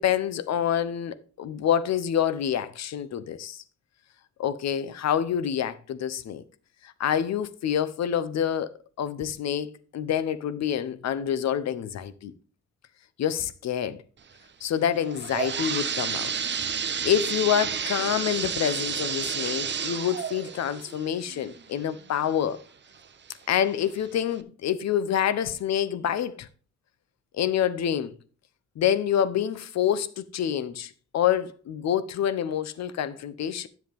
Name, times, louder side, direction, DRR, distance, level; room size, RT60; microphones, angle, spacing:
voice 1, 0.0-3.6 4.4-6.4 7.0-8.7 9.0-12.3 13.2-14.0 14.6-16.3 17.0-22.6 23.5-26.5 27.3-28.1 28.8-33.7, left 9 dB, 60° left, 0.8 m, -27 dB
sound 1, 14.9-22.5 23.0-23.1 23.9-24.0 24.4-24.5, right 7 dB, 35° right, 0.8 m, -31 dB
10.5 x 7.2 x 3.5 m
cardioid pair, 90°, 30 cm